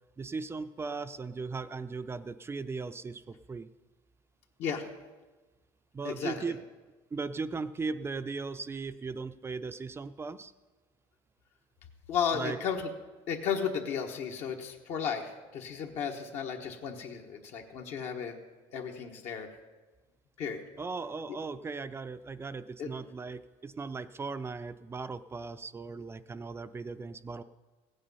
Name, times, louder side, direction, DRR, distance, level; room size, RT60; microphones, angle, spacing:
voice 1, 0.2-3.7 5.9-6.6 7.1-10.5 12.3-12.6 20.8-27.4, right 4 dB, 20° right, 12 dB, 0.4 m, -38 dB
voice 2, 12.1-12.8 13.3-18.3 18.7-19.5 20.4-20.6 22.8-22.9, left 7 dB, 65° left, 2 dB, 1.3 m, -34 dB
16.0 x 8.8 x 5.5 m, 1.2 s
cardioid pair, 115°, 12 cm